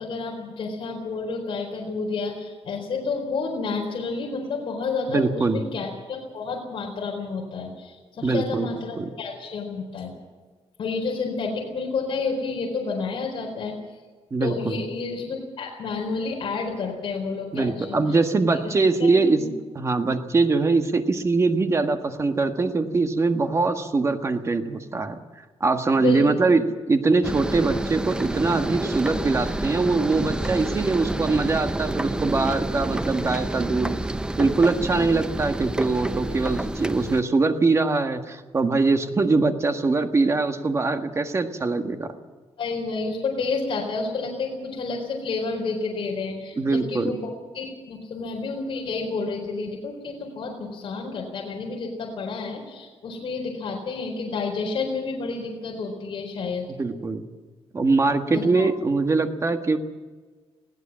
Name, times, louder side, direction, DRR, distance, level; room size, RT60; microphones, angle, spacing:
voice 1, 0.0-10.1 10.8-13.7 14.4-18.0 18.6-18.7 19.0-19.1 19.4-19.5 26.0-26.6 34.9-35.1 42.6-56.7 58.3-58.7, left 4 dB, 55° left, 0 dB, 4.4 m, -30 dB
voice 2, 5.1-5.6 8.2-8.7 8.9-9.1 14.3-14.8 17.5-19.4 19.7-25.2 25.6-26.6 26.9-34.0 34.4-42.1 46.6-47.1 56.8-57.2 57.7-59.8, right 3 dB, 30° right, 6 dB, 1.6 m, -22 dB
sound 1, 27.2-37.2, right 1 dB, 10° right, 0.7 m, -29 dB
21.0 x 17.0 x 7.5 m, 1.4 s
wide cardioid pair, 155°, 10 cm